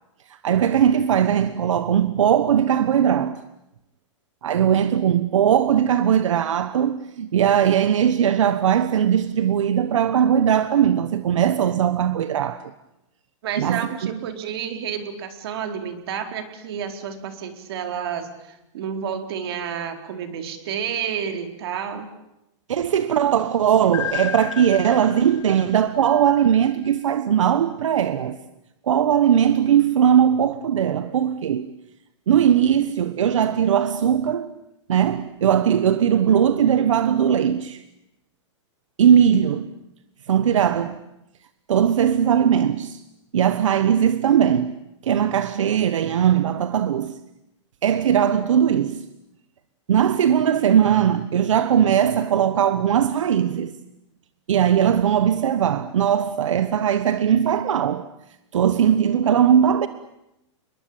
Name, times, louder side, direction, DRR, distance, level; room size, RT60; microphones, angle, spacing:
voice 1, 0.4-3.4 4.4-12.6 13.6-13.8 22.7-28.4 28.9-31.7 32.3-34.5 34.9-37.8 39.0-39.7 40.3-40.9 41.7-43.0 43.3-44.7 45.0-47.1 47.8-49.0 49.9-53.7 54.5-58.1 58.5-59.9, right 9 dB, 80° right, 1.4 m, -19 dB
voice 2, 13.4-22.1, right 8 dB, 50° right, 4.2 m, -30 dB
sound 1, 23.9-26.9, left 9 dB, 75° left, 2.8 m, -33 dB
30.0 x 22.0 x 8.8 m
hypercardioid pair, 160°, 16 cm